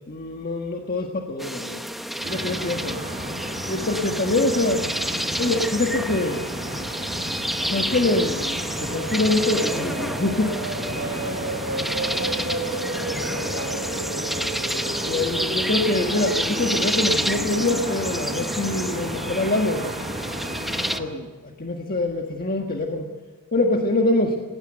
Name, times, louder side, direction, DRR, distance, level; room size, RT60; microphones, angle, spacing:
voice 1, 0.1-1.8 2.2-3.0 3.7-4.9 5.4-6.4 7.7-10.6 15.1-19.8 21.0-23.1 23.5-24.4, left 2 dB, 40° left, 2 dB, 1.6 m, -24 dB
sound 1, 1.4-21.0, equal, ahead, 0.9 m, -29 dB
sound 2, 2.2-21.0, right 1 dB, 35° right, 5.5 m, -33 dB
sound 3, 8.3-20.0, right 2 dB, 70° right, 5.0 m, -35 dB
voice 2, 11.7-13.9, equal, 70° left, 4 dB, 7.8 m, -37 dB
19.5 x 18.5 x 7.8 m, 1.5 s
head